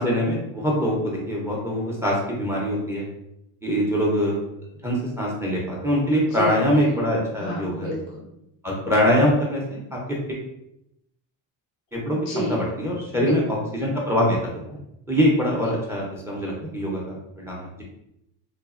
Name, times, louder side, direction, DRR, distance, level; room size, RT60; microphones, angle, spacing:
voice 1, 0.0-3.1 3.6-4.4 4.8-7.9 8.6-9.8 10.3-10.4 11.9-14.4 14.7-14.8 15.1-17.8, equal, 5° right, -3 dB, 0.5 m, -23 dB
voice 2, 6.3-6.8 7.4-8.2 12.0-12.6 13.1-13.3, right 1 dB, 85° left, -3 dB, 1.3 m, -31 dB
3.1 x 2.1 x 2.4 m, 0.82 s
cardioid pair, 110°, 44 cm